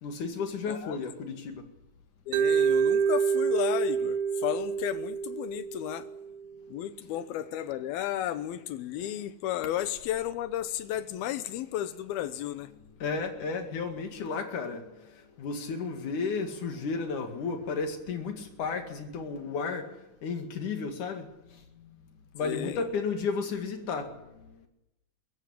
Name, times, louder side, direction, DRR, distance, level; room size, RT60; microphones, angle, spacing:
voice 1, 0.0-1.7 13.0-22.0 22.3-24.7, left 4 dB, 60° left, 3.4 m, -33 dB
voice 2, 0.7-1.0 2.3-6.0 6.7-12.7 22.4-22.8, left 12 dB, 80° left, 2.9 m, -33 dB
Mallet percussion, 2.3-6.4, right 7 dB, 90° right, 2.9 m, -27 dB
22.5 x 15.5 x 8.6 m
omnidirectional pair, 4.4 m